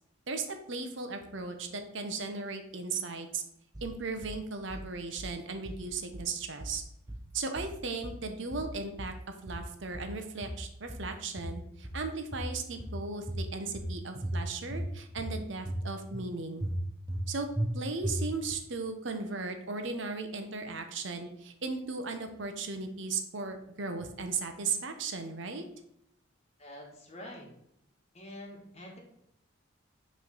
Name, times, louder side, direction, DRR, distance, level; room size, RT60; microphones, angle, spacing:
voice 1, 0.3-3.4 3.8-6.8 7.3-9.1 9.4-16.7 17.3-25.6, right 4 dB, 60° right, 6 dB, 0.7 m, -36 dB
sound 1, 3.7-4.4 4.7-5.3 5.7-6.3 6.6-7.3 7.6-8.2 8.5-9.2 9.5-10.2 10.4-11.1 11.4-12.1 12.3-13.0 13.3-13.9 14.2-14.9 15.2-15.8 16.1-16.2 16.6-17.3 17.6-17.7 18.0-18.5, right 1 dB, 20° right, 0.7 m, -36 dB
voice 2, 26.6-27.5 28.1-29.0, left 1 dB, 30° left, 0 dB, 1.3 m, -46 dB
6.1 x 3.2 x 5.4 m, 0.74 s
head